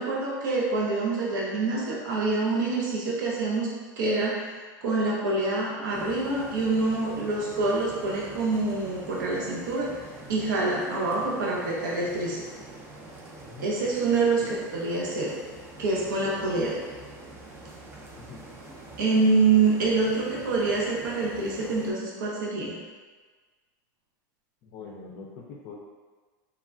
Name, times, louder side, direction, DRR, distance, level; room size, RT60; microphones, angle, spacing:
voice 1, 0.0-3.7 4.0-10.0 10.3-12.4 13.6-15.3 15.8-16.7 19.0-22.8, right 3 dB, 75° right, -4 dB, 0.6 m, -26 dB
sound 1, 5.9-21.9, right 2 dB, 20° right, 0.5 m, -45 dB
voice 2, 13.4-13.7 14.4-14.6 16.2-16.5 18.1-18.4 24.6-25.7, left 5 dB, 50° left, -3 dB, 0.4 m, -43 dB
3.4 x 2.2 x 2.4 m, 1.4 s
hypercardioid pair, 105°, 11 cm